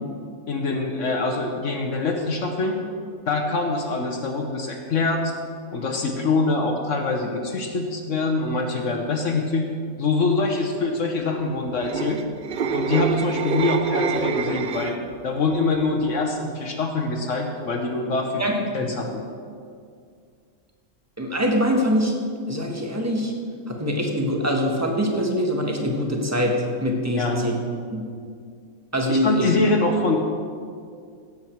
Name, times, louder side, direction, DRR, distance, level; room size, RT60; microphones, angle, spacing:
voice 1, 0.5-2.8 3.3-5.3 5.7-9.6 10.0-12.2 12.7-15.0 15.2-19.2 27.1-27.4 29.1-30.2, left 3 dB, 55° left, 2 dB, 1.2 m, -24 dB
sound 1, 11.7-15.1 15.5-15.8, right 5 dB, 65° right, 0.5 m, -26 dB
voice 2, 21.2-22.1 22.5-23.3 23.7-27.6 27.9-28.0 28.9-29.5, equal, 10° right, 0 dB, 1.3 m, -23 dB
16.5 x 7.7 x 4.6 m, 2.2 s
omnidirectional pair, 1.6 m